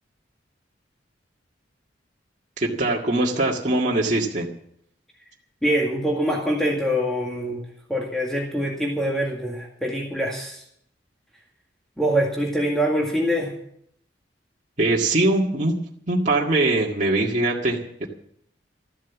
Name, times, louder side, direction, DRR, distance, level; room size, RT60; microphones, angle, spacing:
voice 1, 2.6-4.5 14.8-15.7 16.1-18.1, right 2 dB, 40° right, -4 dB, 1.9 m, -22 dB
voice 2, 5.6-7.6 7.9-10.6 12.0-13.5, equal, 5° left, -2 dB, 2.0 m, -24 dB
14.0 x 12.0 x 7.2 m, 0.69 s
head